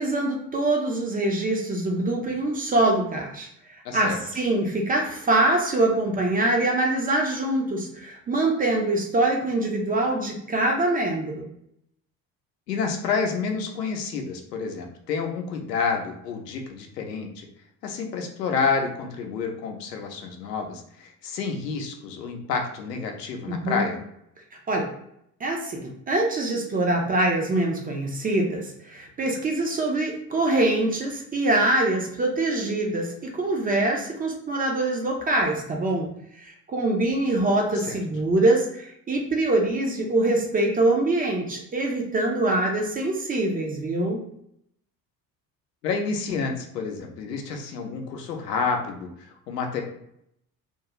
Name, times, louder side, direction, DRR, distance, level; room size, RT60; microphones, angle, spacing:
voice 1, 0.0-11.3 23.5-23.9 24.7-24.9 25.4-36.1 36.4-44.2, right 2 dB, 20° right, 1 dB, 0.4 m, -24 dB
voice 2, 3.8-4.2 12.7-17.5 17.8-24.0 37.9-38.0 45.8-49.8, left 5 dB, 75° left, 3 dB, 0.6 m, -29 dB
2.5 x 2.3 x 2.9 m, 0.74 s
figure-of-eight pair, 60°, 49 cm